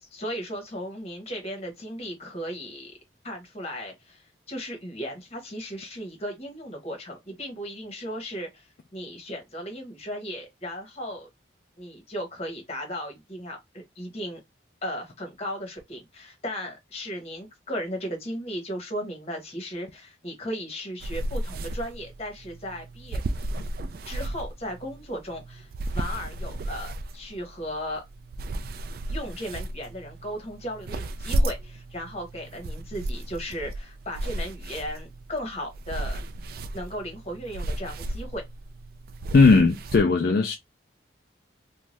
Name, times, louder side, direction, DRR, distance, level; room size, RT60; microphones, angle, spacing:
voice 1, 0.0-2.9 3.2-11.3 11.8-14.4 14.8-23.2 24.0-25.7 25.9-28.0 29.1-36.2 36.7-38.4, equal, 35° left, 1.1 m, -36 dB
sound 1, 21.0-40.0, right 1 dB, 55° right, 0.3 m, -34 dB
voice 2, 39.3-40.6, left 4 dB, 55° left, 0.4 m, -17 dB
2.6 x 2.3 x 3.2 m
head